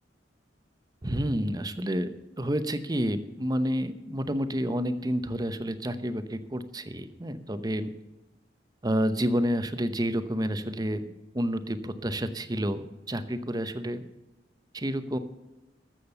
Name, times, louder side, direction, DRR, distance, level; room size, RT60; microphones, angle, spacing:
voice 1, 1.0-2.1 2.4-7.9 8.8-14.1 14.7-15.2, equal, 20° right, 11 dB, 0.8 m, -29 dB
13.5 x 7.5 x 6.9 m, 1.1 s
head